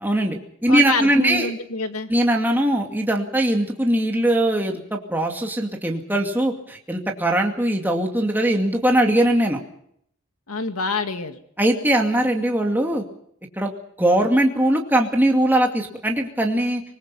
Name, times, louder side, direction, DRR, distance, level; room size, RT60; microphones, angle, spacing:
voice 1, 0.0-1.5 2.1-9.6 11.6-13.0 13.6-13.7 14.0-16.8, right 1 dB, 10° right, 1 dB, 2.3 m, -20 dB
voice 2, 0.7-2.1 10.5-11.4, left 3 dB, 85° left, 7 dB, 2.1 m, -26 dB
25.0 x 20.5 x 5.6 m, 0.69 s
head